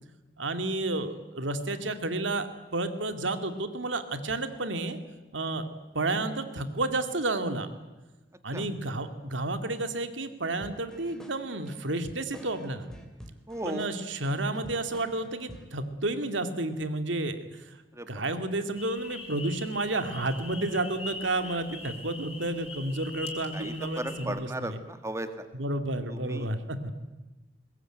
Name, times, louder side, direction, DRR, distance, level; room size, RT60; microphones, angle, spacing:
voice 1, 0.4-5.0 5.3-5.7 5.9-7.7 8.4-12.9 13.6-17.8 18.1-24.8 25.5-26.9, right 2 dB, 85° right, 9 dB, 2.4 m, -31 dB
sound 1, 10.6-15.8, equal, 5° left, 3.3 m, -48 dB
voice 2, 13.5-13.9 17.9-18.2 21.4-21.5 23.5-25.5 26.1-26.5, right 1 dB, 15° right, 9 dB, 1.9 m, -36 dB
sound 2, 18.7-24.2, left 3 dB, 30° left, 5.3 m, -42 dB
22.5 x 20.5 x 9.2 m, 1.1 s
head